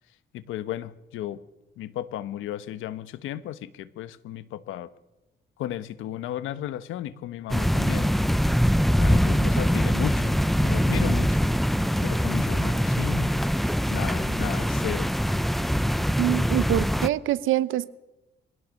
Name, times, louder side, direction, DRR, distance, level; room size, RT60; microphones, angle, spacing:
voice 1, 0.3-1.4 1.8-4.9 5.6-8.1 9.0-11.4 12.0-13.3 13.9-15.1, left 12 dB, 90° left, 15 dB, 1.1 m, -34 dB
sound 1, 7.5-17.1, equal, ahead, 0.6 m, -23 dB
voice 2, 16.2-17.9, right 13 dB, 80° right, 17 dB, 0.9 m, -25 dB
24.0 x 17.5 x 6.5 m, 1.0 s
cardioid pair, 90°, 20 cm